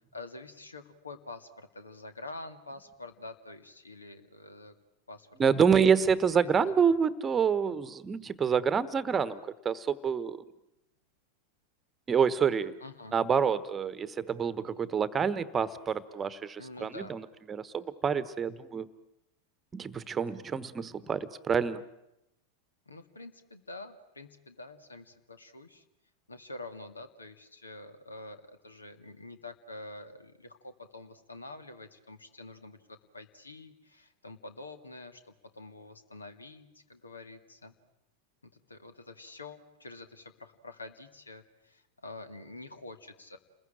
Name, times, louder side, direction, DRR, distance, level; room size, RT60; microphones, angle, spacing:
voice 1, 0.1-4.7 5.1-5.6 6.0-6.1 12.8-13.2 16.6-17.2 22.9-25.8 26.3-35.2 35.5-37.8 38.7-43.4, left 2 dB, 80° left, 9 dB, 2.0 m, -47 dB
voice 2, 5.4-10.4 12.1-12.8 13.1-18.9 19.7-21.8, right 6 dB, 20° right, 16 dB, 1.1 m, -27 dB
30.0 x 21.0 x 8.9 m, 0.90 s
figure-of-eight pair, 90°, 0 cm